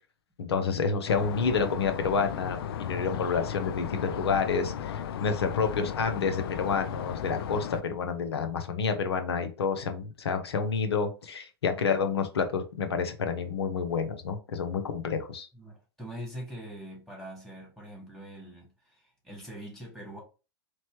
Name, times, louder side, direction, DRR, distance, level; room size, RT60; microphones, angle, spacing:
voice 1, 0.4-15.5, left 5 dB, 85° left, 0.8 m, -29 dB
sound 1, 1.1-7.8, left 8 dB, 70° left, 0.4 m, -35 dB
voice 2, 15.5-20.2, equal, ahead, 2.5 m, -43 dB
4.1 x 3.2 x 3.0 m
hypercardioid pair, 115°, 13 cm